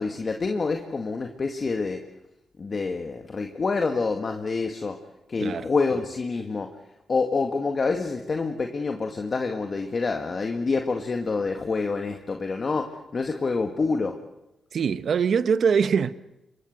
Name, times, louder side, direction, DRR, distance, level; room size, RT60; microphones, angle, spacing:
voice 1, 0.0-2.0 2.6-5.0 5.3-6.7 7.1-14.1, left 4 dB, 40° left, 1.9 m, -27 dB
voice 2, 14.7-16.1, right 6 dB, 60° right, 1.0 m, -23 dB
27.0 x 24.0 x 6.7 m
cardioid pair, 80°, 0 cm